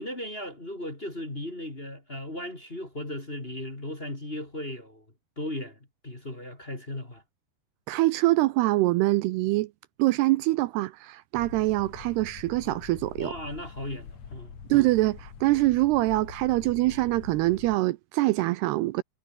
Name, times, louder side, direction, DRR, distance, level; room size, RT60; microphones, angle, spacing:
voice 1, 0.0-5.0 5.4-7.2 13.2-14.6, left 1 dB, 15° left, 2.8 m, -36 dB
voice 2, 7.9-9.7 10.0-13.3 14.7-19.0, right 18 dB, 80° right, 2.6 m, -24 dB
sound 1, 11.3-17.8, left 7 dB, 45° left, 3.5 m, -45 dB
omnidirectional pair, 5.0 m